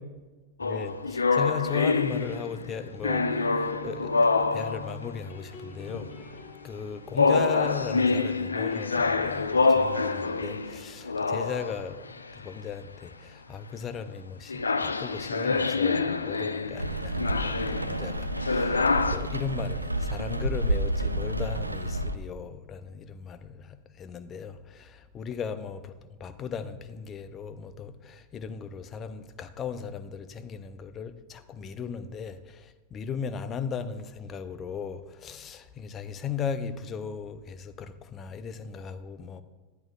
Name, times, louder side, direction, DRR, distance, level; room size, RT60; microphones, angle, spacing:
sound 1, 0.6-2.7 3.0-5.1 5.9-6.4 7.2-12.5 14.5-19.2, left 4 dB, 75° left, 0.4 m, -26 dB
voice 1, 0.6-6.1 6.6-12.0 12.4-25.9 26.2-39.4, left 6 dB, 25° left, 0.6 m, -37 dB
sound 2, 2.4-8.2 8.4-11.9, equal, 45° left, 1.7 m, -47 dB
Rain, 16.8-22.1, right 1 dB, 85° right, 0.4 m, -30 dB
10.5 x 10.5 x 2.4 m
figure-of-eight pair, 90°, 0 cm